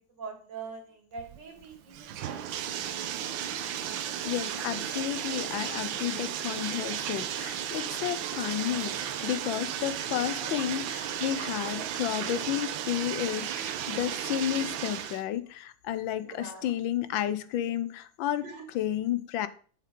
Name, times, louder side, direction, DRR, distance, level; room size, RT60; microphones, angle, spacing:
voice 1, 0.2-2.8 8.3-8.4 10.4-10.5 12.3-12.4 16.2-16.7 18.4-18.6, right 4 dB, 65° right, 3 dB, 2.6 m, -44 dB
Bathtub (filling or washing), 1.2-15.2, right 10 dB, 85° right, 1.5 m, -34 dB
voice 2, 4.2-18.4 18.7-19.5, left 11 dB, 80° left, 13 dB, 1.4 m, -32 dB
6.7 x 6.6 x 5.2 m, 0.43 s
omnidirectional pair, 2.1 m